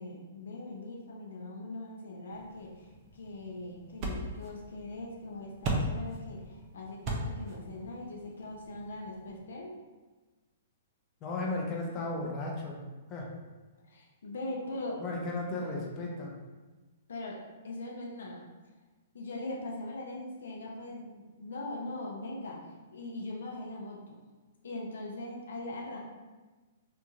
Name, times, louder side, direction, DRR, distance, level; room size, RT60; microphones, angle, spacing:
voice 1, 0.0-9.8 13.9-15.0 17.1-18.5 19.1-22.6 22.9-24.2 24.6-26.0, left 2 dB, 75° left, -1 dB, 0.5 m, -41 dB
sound 1, 2.3-9.4, right 1 dB, 35° right, 0.5 m, -39 dB
voice 2, 11.2-12.8 13.1-13.3 15.0-16.4, left 2 dB, 30° left, -2 dB, 0.6 m, -35 dB
2.9 x 2.2 x 2.6 m, 1.2 s
hypercardioid pair, 125°, 0 cm